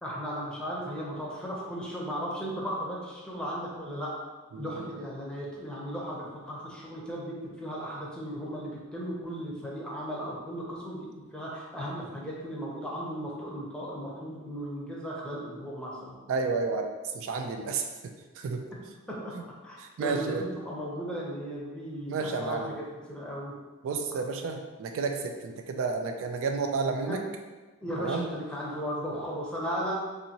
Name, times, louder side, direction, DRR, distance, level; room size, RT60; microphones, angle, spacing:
voice 1, 0.0-4.2 4.6-16.1 19.1-19.4 19.6-22.8 23.1-23.5 27.1-27.2 27.8-29.9, equal, 5° left, -5 dB, 0.7 m, -36 dB
voice 2, 4.5-5.0 16.3-16.9 17.1-17.9 18.4-18.6 19.3-19.4 19.8-20.4 22.1-22.8 23.8-27.2 28.0-28.3, right 4 dB, 65° right, 4 dB, 0.3 m, -31 dB
4.0 x 2.7 x 2.8 m, 1.3 s
head